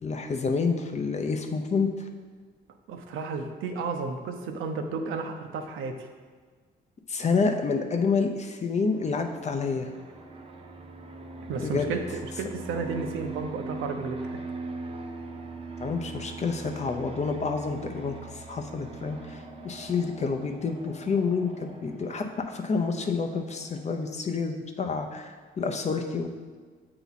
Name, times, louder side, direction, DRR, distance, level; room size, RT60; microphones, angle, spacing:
voice 1, 0.0-2.1 7.1-9.9 11.6-11.9 15.8-26.3, left 4 dB, 35° left, 4 dB, 0.6 m, -28 dB
voice 2, 2.9-6.1 11.4-14.4, right 4 dB, 85° right, 5 dB, 0.7 m, -33 dB
Fixed-wing aircraft airplane, 8.9-24.1, right 3 dB, 30° right, 0.7 m, -41 dB
8.0 x 2.9 x 4.0 m, 1.5 s
cardioid pair, 90°, 20 cm